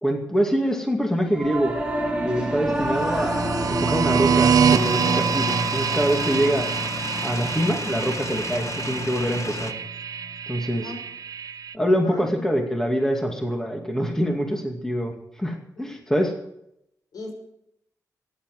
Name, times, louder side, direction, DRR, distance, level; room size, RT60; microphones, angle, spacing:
voice 1, 0.0-1.7 2.2-6.6 7.2-9.8 10.5-10.9 11.7-16.3, equal, 5° left, 2 dB, 2.4 m, -25 dB
Singing / Musical instrument, 1.3-10.8, right 1 dB, 15° right, 2.8 m, -30 dB
sound 1, 2.9-11.7, right 7 dB, 65° right, 0.6 m, -25 dB
sound 2, 4.7-9.7, left 5 dB, 50° left, 1.1 m, -34 dB
voice 2, 12.0-12.5 15.8-15.9 17.1-17.3, left 2 dB, 70° left, 3 dB, 5.8 m, -39 dB
15.5 x 10.5 x 7.7 m, 0.79 s
cardioid pair, 100°, 7 cm